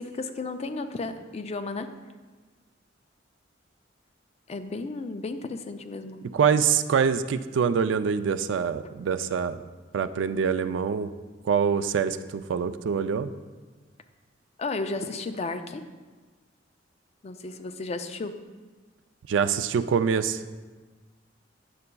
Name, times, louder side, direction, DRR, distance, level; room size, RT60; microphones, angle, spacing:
voice 1, 0.0-1.9 4.5-6.2 14.6-15.8 17.2-18.3, left 3 dB, 35° left, 8 dB, 0.4 m, -33 dB
voice 2, 6.3-9.6 9.9-11.1 11.5-13.3 19.3-20.4, right 6 dB, 75° right, 12 dB, 0.3 m, -25 dB
9.4 x 6.7 x 2.2 m, 1.3 s
head